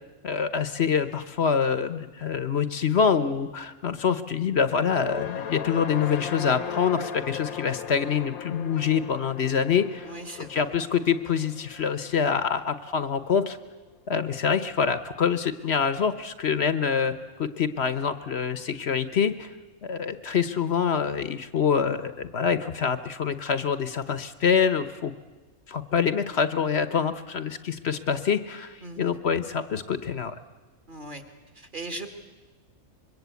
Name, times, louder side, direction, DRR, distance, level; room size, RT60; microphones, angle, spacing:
voice 1, 0.2-10.1 10.5-13.6 14.1-19.5 19.8-25.1 25.7-30.4, left 6 dB, 50° left, 13 dB, 1.1 m, -25 dB
sound 1, 4.7-13.1, left 8 dB, 75° left, 1.6 m, -38 dB
voice 2, 10.0-10.6 28.8-29.1 30.9-31.2 31.5-32.1, right 2 dB, 35° right, 7 dB, 2.2 m, -38 dB
25.0 x 22.0 x 8.3 m, 1.2 s
omnidirectional pair, 1.5 m